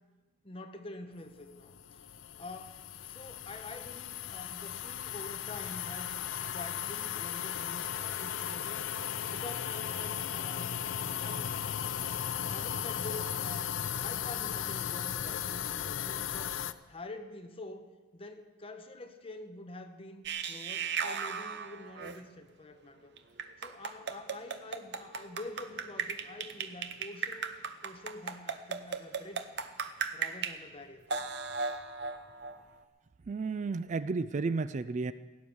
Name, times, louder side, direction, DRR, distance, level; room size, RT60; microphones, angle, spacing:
voice 1, 0.4-2.1 2.4-6.1 6.5-8.8 9.3-11.5 12.4-16.6 16.9-23.1 23.6-27.6 27.8-29.5 30.1-31.1, left 2 dB, 30° left, 6 dB, 1.1 m, -46 dB
sound 1, 1.6-16.7, left 9 dB, 75° left, 0.6 m, -36 dB
sound 2, 20.3-22.2 23.2-30.6 31.1-32.8, right 5 dB, 60° right, 0.8 m, -37 dB
voice 2, 33.3-35.1, right 4 dB, 40° right, 14 dB, 0.4 m, -32 dB
17.0 x 9.6 x 7.1 m, 1.3 s
head